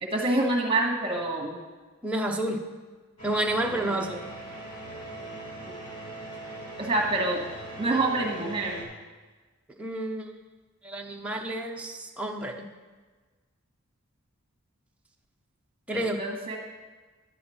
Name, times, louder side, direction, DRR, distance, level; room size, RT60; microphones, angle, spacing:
voice 1, 0.0-1.6 3.7-3.9 5.6-5.7 6.8-7.4 7.8-8.8 15.9-16.6, right 2 dB, 25° right, 1 dB, 1.4 m, -27 dB
voice 2, 2.0-2.6 3.2-4.2 9.8-10.3 10.8-12.7 15.9-16.2, right 1 dB, 5° right, 0 dB, 0.7 m, -30 dB
sound 1, 3.2-8.8, right 1 dB, 80° left, 2.5 m, -41 dB
10.5 x 8.0 x 4.3 m, 1.3 s
head